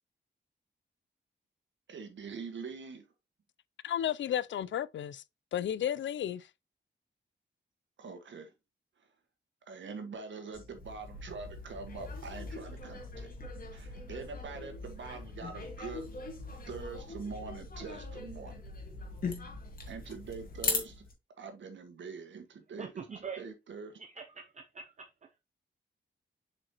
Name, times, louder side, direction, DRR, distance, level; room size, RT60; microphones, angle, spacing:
voice 1, 1.9-3.0 8.0-8.5 9.7-16.0 16.7-18.6 19.9-21.0 21.4-24.0, right 4 dB, 80° right, 1.7 m, -44 dB
voice 2, 3.8-5.2 5.5-6.5, left 10 dB, 80° left, 0.4 m, -33 dB
sound 1, 10.5-21.1, left 3 dB, 50° left, 1.6 m, -40 dB
voice 3, 22.8-23.4 24.2-25.1, right 6 dB, 40° right, 0.6 m, -43 dB
7.2 x 5.0 x 2.9 m
wide cardioid pair, 180°, 19 cm